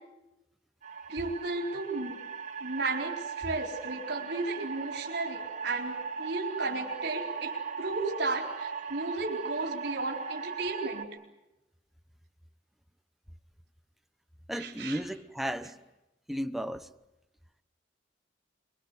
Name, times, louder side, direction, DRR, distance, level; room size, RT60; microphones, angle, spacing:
sound 1, 0.8-11.0, right 5 dB, 45° right, 2.3 m, -38 dB
voice 1, 1.1-2.2 2.6-11.1 14.5-15.0, right 3 dB, 65° right, 4.2 m, -34 dB
voice 2, 14.5-15.7 16.3-16.9, equal, ahead, 0.9 m, -34 dB
24.0 x 24.0 x 8.2 m
head